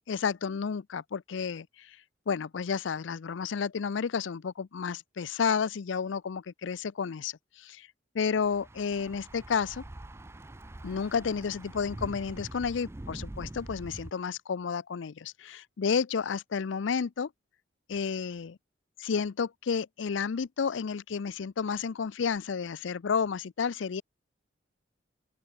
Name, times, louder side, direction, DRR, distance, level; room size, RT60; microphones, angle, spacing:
voice 1, 0.1-2.0 2.3-7.9 8.1-9.8 10.8-17.3 17.9-18.6 19.0-24.0, left 6 dB, 80° left, 0.5 m, -31 dB
Thunder / Bicycle, 8.4-14.1, right 1 dB, 15° right, 0.4 m, -44 dB
open air
head